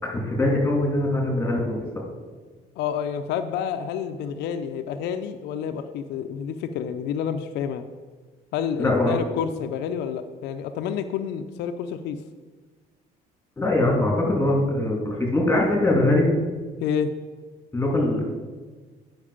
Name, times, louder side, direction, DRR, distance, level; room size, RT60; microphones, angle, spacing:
voice 1, 0.0-1.8 8.8-9.1 13.6-16.3 17.7-18.2, left 1 dB, 10° left, -1 dB, 3.0 m, -22 dB
voice 2, 2.8-7.8 8.5-12.2 16.8-17.1, left 8 dB, 85° left, 7 dB, 0.6 m, -29 dB
9.9 x 6.0 x 5.0 m, 1.4 s
cardioid pair, 110°, 17 cm